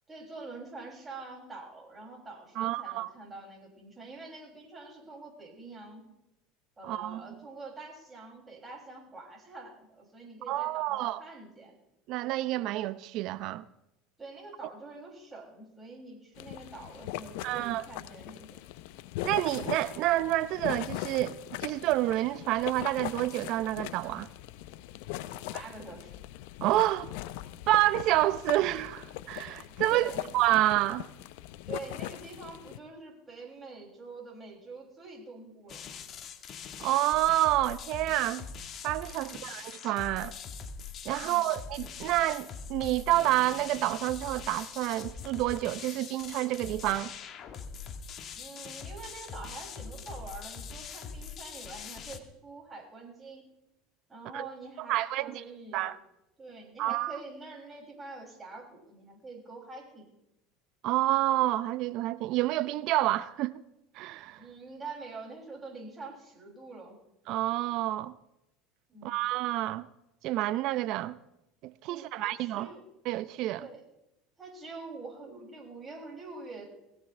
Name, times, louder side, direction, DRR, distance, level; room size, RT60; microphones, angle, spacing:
voice 1, 0.1-6.0 6.8-11.8 14.2-18.6 25.5-26.2 29.9-30.2 31.7-36.0 39.2-39.4 41.2-41.4 48.3-53.4 54.1-55.9 56.4-60.1 64.4-67.0 68.9-69.2 71.9-72.8 73.6-73.8 74.4-76.7, right 3 dB, 20° right, 6.5 m, -45 dB
voice 2, 2.6-3.1 6.8-7.2 10.5-11.2 12.1-13.7 17.4-17.9 19.2-24.3 26.6-27.1 27.7-31.1 36.8-38.5 38.8-40.3 41.0-47.1 54.3-54.5 54.9-55.4 55.7-56.0 56.8-57.2 60.8-63.6 64.0-64.4 67.3-68.2 69.0-69.9 70.2-71.2 71.6-72.7 73.1-73.7, right 15 dB, 60° right, 0.6 m, -28 dB
sound 1, 16.4-32.8, left 14 dB, 70° left, 0.7 m, -40 dB
sound 2, 35.7-52.2, left 6 dB, 40° left, 1.7 m, -43 dB
21.0 x 16.5 x 3.4 m
supercardioid pair, 100°, 0 cm